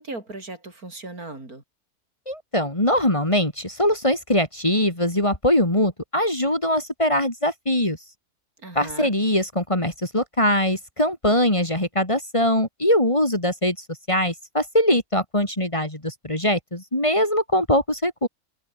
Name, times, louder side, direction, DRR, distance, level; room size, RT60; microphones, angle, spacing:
voice 1, 0.0-1.6 8.6-9.1, right 2 dB, 70° right, 5.8 m, -37 dB
voice 2, 2.3-8.0 8.7-13.8 14.1-18.3, left 1 dB, 20° left, 3.2 m, -22 dB
omnidirectional pair, 1.6 m